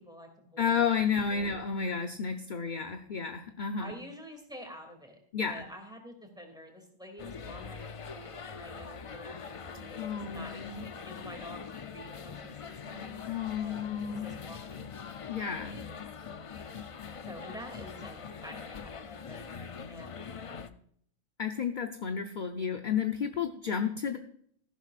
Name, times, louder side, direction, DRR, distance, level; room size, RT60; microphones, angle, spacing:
voice 1, 0.0-1.0 1.3-1.5 3.8-5.2 5.5-13.2 13.6-13.8 14.2-14.9 17.3-20.8, equal, 5° right, 3 dB, 2.5 m, -48 dB
voice 2, 0.6-3.9 5.3-5.6 10.0-10.7 13.2-14.4 15.3-15.8 21.4-24.2, left 6 dB, 45° left, 6 dB, 0.7 m, -31 dB
sound 1, 7.2-20.7, left 6 dB, 60° left, 0.3 m, -43 dB
14.0 x 11.5 x 2.5 m, 0.65 s
omnidirectional pair, 1.4 m